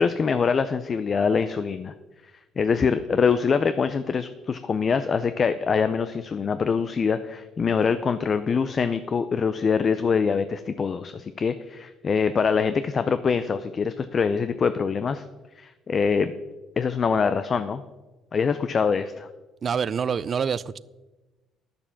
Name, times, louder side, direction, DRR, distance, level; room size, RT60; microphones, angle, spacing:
voice 1, 0.0-1.9 2.6-15.2 15.6-16.3 16.8-17.8 18.3-19.3, left 5 dB, 40° left, 0.5 m, -24 dB
voice 2, 19.6-20.8, right 6 dB, 45° right, 0.4 m, -26 dB
10.0 x 6.9 x 7.2 m
supercardioid pair, 85°, 0 cm